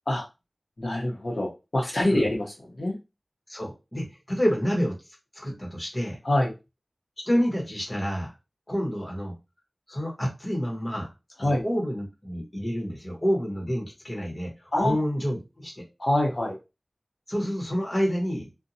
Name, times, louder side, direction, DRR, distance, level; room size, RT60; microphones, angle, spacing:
voice 1, 0.8-2.5 2.8-2.9 6.2-6.5 11.4-11.6 14.7-15.0 16.0-16.5, left 1 dB, 60° left, -2 dB, 0.8 m, -25 dB
voice 2, 3.5-4.9 5.3-6.2 7.2-8.3 8.7-9.3 9.9-11.1 11.4-15.8 17.3-18.5, equal, 25° left, -1 dB, 1.1 m, -28 dB
2.7 x 2.2 x 2.6 m, 0.26 s
wide cardioid pair, 65°, 0 cm